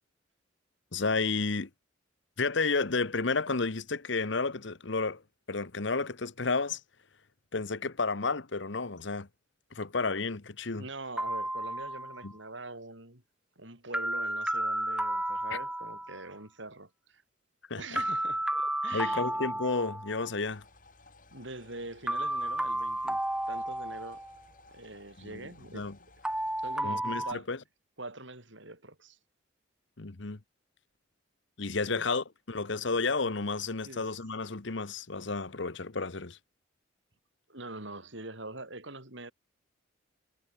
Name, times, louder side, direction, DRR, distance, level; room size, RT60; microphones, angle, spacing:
voice 1, 0.9-1.7 2.4-5.2 5.5-6.8 7.5-9.3 9.7-10.8 12.2-12.3 17.7-18.0 18.9-20.6 25.2-26.0 26.8-27.6 30.0-30.4 31.6-36.4, left 4 dB, 65° left, 1.1 m, -31 dB
voice 2, 10.7-13.2 13.6-17.2 17.8-19.2 21.3-24.2 24.7-25.9 26.6-27.5 28.0-29.2 31.9-32.0 33.8-34.1 37.5-39.3, right 2 dB, 70° right, 7.0 m, -44 dB
sound 1, 11.2-12.3 13.9-16.3 18.0-20.3 22.1-24.4 26.2-27.3, right 1 dB, 5° right, 1.3 m, -32 dB
sound 2, 20.4-26.8, left 3 dB, 40° left, 5.5 m, -58 dB
head